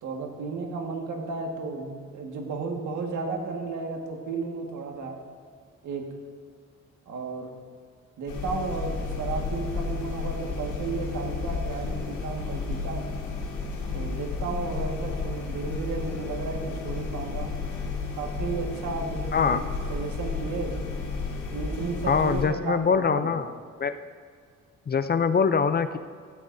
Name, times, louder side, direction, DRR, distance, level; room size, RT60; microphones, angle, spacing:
voice 1, 0.0-5.2 5.8-6.0 7.1-7.5 8.2-13.1 13.9-17.5 18.1-20.7 21.5-23.4, right 4 dB, 70° right, 2 dB, 1.8 m, -33 dB
sound 1, 8.3-22.4, left 4 dB, 85° left, 3.1 m, -32 dB
voice 2, 19.3-19.6 22.1-23.5 23.8-24.0 24.9-26.0, left 5 dB, 30° left, 11 dB, 0.5 m, -23 dB
15.5 x 14.0 x 2.7 m, 2.1 s
cardioid pair, 90°, 30 cm